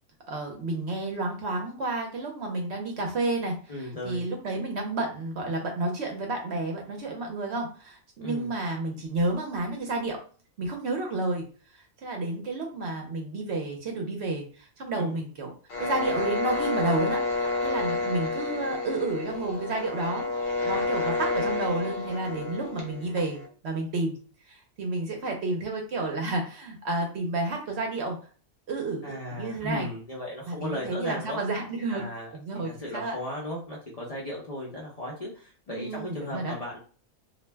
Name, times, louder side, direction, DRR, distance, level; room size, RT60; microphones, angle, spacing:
voice 1, 0.3-10.2 10.6-11.4 11.7-15.5 15.8-24.1 24.5-28.2 28.7-29.9 30.5-32.0 32.3-33.2 35.7-36.5, right 2 dB, 65° right, 2 dB, 0.7 m, -31 dB
voice 2, 3.7-4.3 8.2-8.5 14.9-15.2 29.0-31.4 31.9-32.3 32.6-36.8, left 1 dB, 50° left, -4 dB, 0.4 m, -36 dB
sound 1, 15.7-23.5, left 3 dB, 75° left, 1.0 m, -30 dB
2.5 x 2.0 x 3.2 m, 0.42 s
omnidirectional pair, 1.5 m